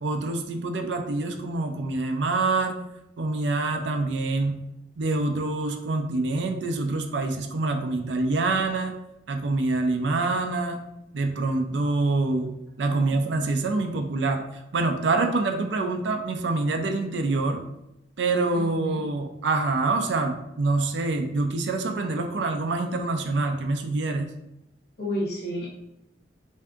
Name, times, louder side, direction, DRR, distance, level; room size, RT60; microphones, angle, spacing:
voice 1, 0.0-2.8 3.2-4.6 5.0-8.9 9.3-10.8 11.1-17.6 18.2-24.3, right 3 dB, 80° right, 6 dB, 0.5 m, -26 dB
voice 2, 18.5-19.0 25.0-25.7, equal, 65° left, -5 dB, 0.9 m, -31 dB
3.4 x 2.7 x 3.5 m, 0.83 s
head